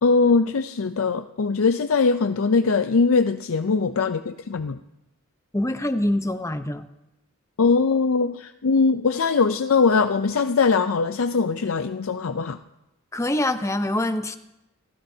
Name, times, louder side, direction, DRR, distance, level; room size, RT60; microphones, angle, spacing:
voice 1, 0.0-4.8 7.6-12.6, left 4 dB, 75° left, 9 dB, 0.5 m, -21 dB
voice 2, 5.5-6.9 13.1-14.4, left 1 dB, 15° left, 9 dB, 0.7 m, -24 dB
29.0 x 15.0 x 2.8 m, 0.95 s
head